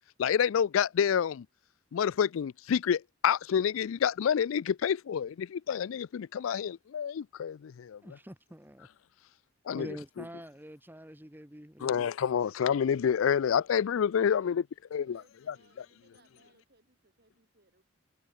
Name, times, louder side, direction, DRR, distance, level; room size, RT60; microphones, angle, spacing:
voice 1, 0.2-1.5 1.9-8.0 9.7-9.9 11.8-14.7 14.9-15.2 15.5-15.9, left 8 dB, 85° left, 0.4 m, -28 dB
voice 2, 8.0-8.9 9.8-12.1, equal, 10° right, 3.1 m, -46 dB
voice 3, 14.9-17.8, right 2 dB, 50° right, 6.0 m, -66 dB
head